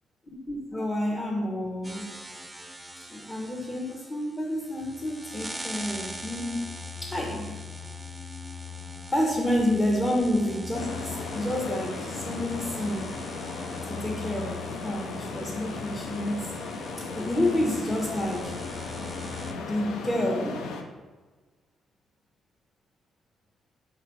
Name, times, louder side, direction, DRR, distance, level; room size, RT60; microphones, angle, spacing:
voice 1, 0.3-2.1 3.1-6.7 7.0-7.6 9.1-13.1 13.9-16.5 17.1-18.5 19.6-20.7, left 1 dB, 20° left, -1 dB, 0.7 m, -29 dB
sound 1, 1.8-19.5, left 2 dB, 10° right, 0.5 m, -41 dB
sound 2, 10.7-20.8, left 3 dB, 90° left, 0.5 m, -36 dB
4.8 x 2.4 x 4.5 m, 1.3 s
cardioid pair, 90°, 0 cm